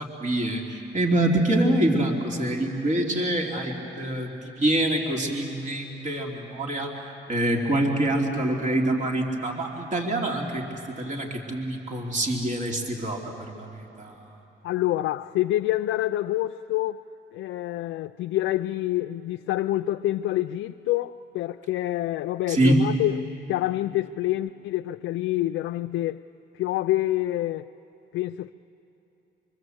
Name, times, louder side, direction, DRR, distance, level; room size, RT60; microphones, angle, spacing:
voice 1, 0.0-6.9 7.3-10.7 10.9-14.2 22.5-22.8, right 1 dB, 40° right, 3.1 m, -25 dB
voice 2, 14.6-17.0 17.3-26.2 26.5-27.7 28.1-28.5, left 15 dB, 80° left, 0.5 m, -27 dB
25.0 x 24.5 x 7.9 m
cardioid pair, 90°, 20 cm